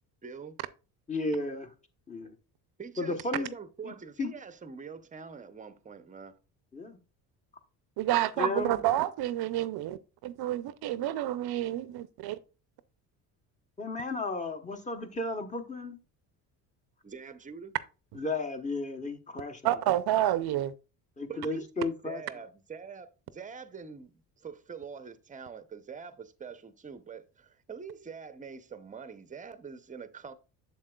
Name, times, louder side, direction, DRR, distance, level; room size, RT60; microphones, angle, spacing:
voice 1, 0.2-0.6 2.8-6.4 17.0-17.8 21.3-30.3, right 6 dB, 20° right, 0.6 m, -45 dB
voice 2, 1.1-1.7 2.1-2.4 3.0-3.5 3.8-4.3 6.7-7.0 8.4-8.8 13.8-16.0 18.2-19.6 21.2-22.2, left 2 dB, 15° left, 0.9 m, -33 dB
voice 3, 8.0-12.4 19.6-20.7, right 13 dB, 60° right, 0.5 m, -29 dB
7.3 x 7.1 x 2.3 m
cardioid pair, 100°, 42 cm